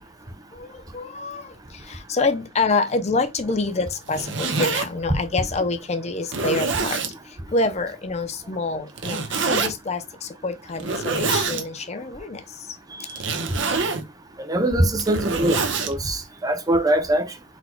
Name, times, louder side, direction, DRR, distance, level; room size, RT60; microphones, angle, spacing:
voice 1, 0.9-1.5 1.9-7.0 7.5-12.4, left 3 dB, 35° left, 0.5 m, -26 dB
Zipper (clothing), 3.9-4.9 5.6-5.7 6.3-7.1 9.0-9.7 10.7-11.6 13.1-14.0 14.8-15.9, right 4 dB, 75° right, 0.9 m, -25 dB
voice 2, 14.5-15.6 15.9-17.3, right 1 dB, 20° right, 0.6 m, -22 dB
4.1 x 2.2 x 4.4 m
head